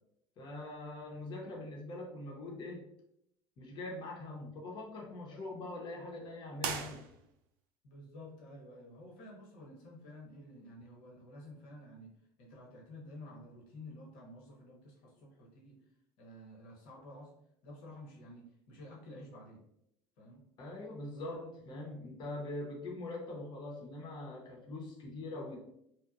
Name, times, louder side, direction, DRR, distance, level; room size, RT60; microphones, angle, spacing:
voice 1, 0.4-2.8 3.6-7.0 20.6-25.6, left 2 dB, 45° left, 0 dB, 0.7 m, -43 dB
sound 1, 6.6-7.6, right 6 dB, 85° right, 0.4 m, -39 dB
voice 2, 7.8-12.1 12.4-15.7 16.2-17.3 17.6-19.6 20.2-20.4 21.1-21.5, left 1 dB, 70° left, -3 dB, 1.0 m, -51 dB
2.8 x 2.1 x 2.3 m, 0.77 s
supercardioid pair, 115°, 11 cm